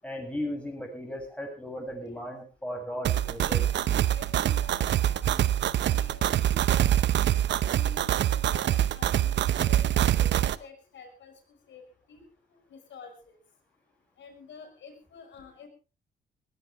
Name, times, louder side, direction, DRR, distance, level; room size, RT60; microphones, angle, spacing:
voice 1, 0.0-3.6, equal, 5° left, 2 dB, 7.9 m, -36 dB
voice 2, 1.9-2.3 3.1-7.1 7.6-12.2 12.5-13.4 14.2-15.7, left 5 dB, 70° left, 6 dB, 5.8 m, -49 dB
sound 1, 3.0-10.5, right 11 dB, 65° right, 0.8 m, -25 dB
19.5 x 15.5 x 3.6 m, 0.33 s
cardioid pair, 90°, 20 cm